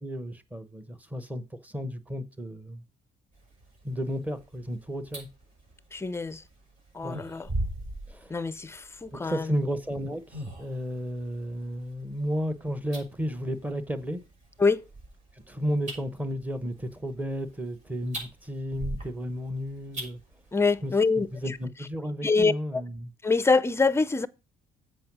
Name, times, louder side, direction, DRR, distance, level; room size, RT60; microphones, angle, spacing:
voice 1, 0.0-2.8 3.8-5.3 7.0-7.2 8.1-8.4 9.1-14.2 15.4-20.2 20.8-23.1, equal, 10° right, 1.0 m, -33 dB
sound 1, 3.3-21.7, right 1 dB, 45° right, 5.5 m, -42 dB
voice 2, 5.9-6.4 6.9-7.5 8.3-9.5 14.6-14.8 20.5-21.3 22.2-22.8 23.2-24.3, left 4 dB, 15° left, 0.5 m, -25 dB
7.7 x 5.4 x 5.9 m
cardioid pair, 110°, 17 cm